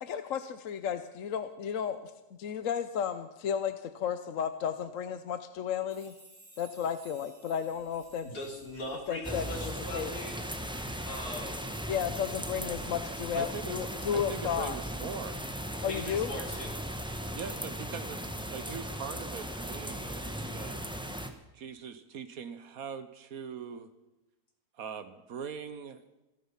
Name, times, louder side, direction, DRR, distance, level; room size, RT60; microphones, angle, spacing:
voice 1, 0.0-2.1 2.4-6.1 6.6-8.3 9.1-10.1 11.9-14.8 15.8-16.3, left 8 dB, 60° left, 10 dB, 1.1 m, -33 dB
sound 1, 5.9-12.8 13.1-13.3 14.6-14.7, right 2 dB, 45° right, 5.6 m, -60 dB
sound 2, 7.7-13.4, left 1 dB, 25° right, 5.9 m, -61 dB
voice 2, 8.2-10.4 11.1-11.8 15.8-16.8 17.3-17.6, left 1 dB, 80° left, 0 dB, 3.8 m, -40 dB
sound 3, 9.2-21.3, equal, 5° right, 1.0 m, -37 dB
voice 3, 13.3-13.8 14.1-15.4 17.3-18.2 18.5-20.8 21.5-23.9 24.8-26.1, right 7 dB, 65° right, 12 dB, 1.4 m, -41 dB
25.0 x 9.3 x 5.7 m, 1.0 s
omnidirectional pair, 1.7 m